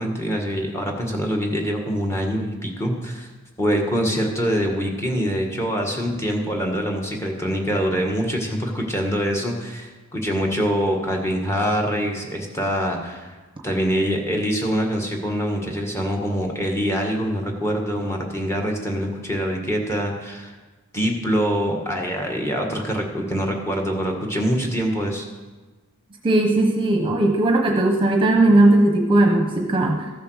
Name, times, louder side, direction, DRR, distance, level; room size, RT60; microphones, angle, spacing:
voice 1, 0.0-3.3 3.6-13.3 13.6-20.5 20.9-25.3, equal, 10° left, 1 dB, 1.6 m, -24 dB
voice 2, 26.2-30.0, right 2 dB, 25° right, 3 dB, 1.0 m, -17 dB
14.0 x 7.1 x 6.4 m, 1.3 s
head